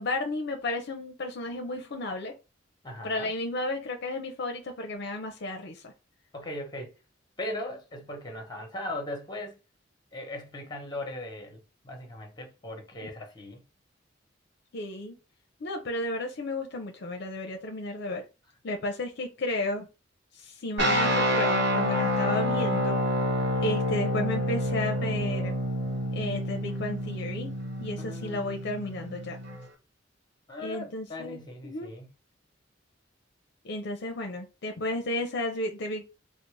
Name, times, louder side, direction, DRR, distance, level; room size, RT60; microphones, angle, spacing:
voice 1, 0.0-2.3 3.0-5.9 13.0-13.1 14.7-15.2 15.6-18.2 18.6-19.9 20.3-23.0 23.6-25.6 26.1-27.5 27.8-29.4 30.6-31.9 33.6-36.0, left 2 dB, 60° left, 0.5 m, -33 dB
voice 2, 2.8-3.3 6.3-6.9 7.4-9.6 10.1-13.6 28.0-28.7 30.5-32.1, left 1 dB, 20° left, 0.9 m, -39 dB
sound 1, 20.8-29.7, equal, 60° right, 0.8 m, -28 dB
3.8 x 2.0 x 3.1 m
head